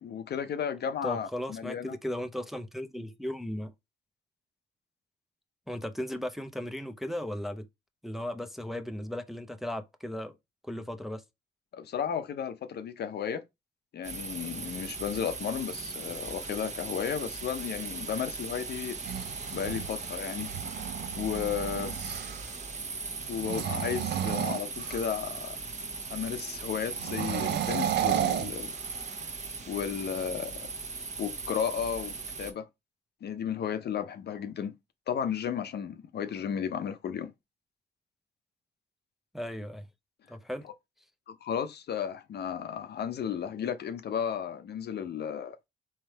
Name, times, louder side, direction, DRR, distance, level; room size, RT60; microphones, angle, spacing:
voice 1, 0.0-2.0 11.7-13.4 13.9-19.0 19.5-20.5 21.1-22.0 23.3-25.6 26.1-28.8 29.7-30.7 31.2-32.7 33.2-34.7 35.1-37.3 41.3-45.6, left 8 dB, 55° left, 0.6 m, -34 dB
voice 2, 1.0-3.7 5.7-7.6 8.0-10.4 10.6-11.2 39.3-39.9 40.3-40.6, left 1 dB, ahead, 0.6 m, -36 dB
sound 1, 14.0-32.5, right 4 dB, 35° right, 1.0 m, -39 dB
sound 2, 18.8-22.6 23.3-25.4 26.9-29.2, right 10 dB, 60° right, 0.4 m, -33 dB
3.3 x 3.2 x 4.5 m
cardioid pair, 90°, 20 cm